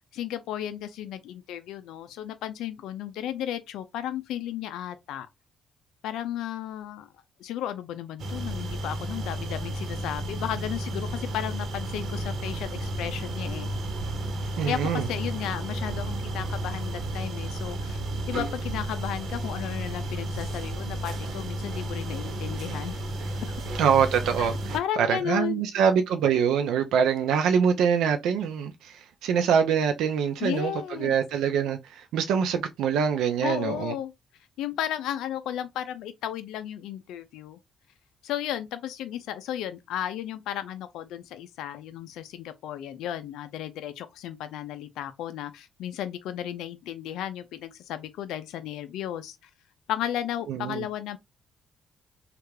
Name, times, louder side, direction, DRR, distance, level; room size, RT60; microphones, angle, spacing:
voice 1, 0.1-5.3 6.0-7.1 7.4-13.7 14.7-18.0 18.3-23.0 23.4-23.5 24.4-25.6 30.4-31.1 33.4-34.1 34.6-37.6 38.2-49.4 49.9-51.2, left 11 dB, 85° left, 0.4 m, -34 dB
sound 1, 8.2-24.8, right 1 dB, 60° right, 1.0 m, -32 dB
voice 2, 14.6-15.1 23.7-33.9 50.5-50.8, right 7 dB, 85° right, 0.4 m, -24 dB
3.2 x 2.4 x 3.2 m
cardioid pair, 90°, 0 cm